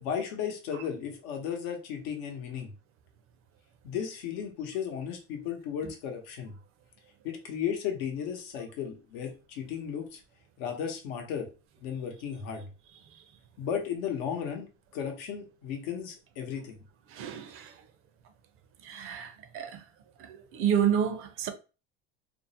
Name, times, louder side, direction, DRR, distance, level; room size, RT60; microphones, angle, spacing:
voice 1, 0.0-2.7 3.8-6.5 7.2-10.2 10.6-11.5 11.8-12.7 13.6-14.7 14.9-16.8, left 8 dB, 80° left, 0.8 m, -35 dB
voice 2, 17.1-17.9 18.8-19.8 20.2-21.5, right 9 dB, 45° right, 0.5 m, -30 dB
2.5 x 2.0 x 2.6 m
supercardioid pair, 110°, 30 cm